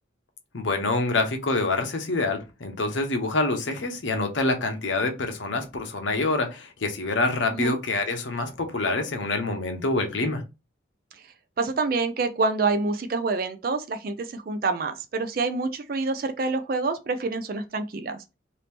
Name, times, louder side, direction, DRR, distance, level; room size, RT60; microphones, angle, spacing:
voice 1, 0.5-10.4, left 2 dB, 75° left, 0.8 m, -26 dB
voice 2, 11.6-18.2, right 3 dB, 50° right, 0.4 m, -27 dB
2.9 x 2.6 x 3.4 m
head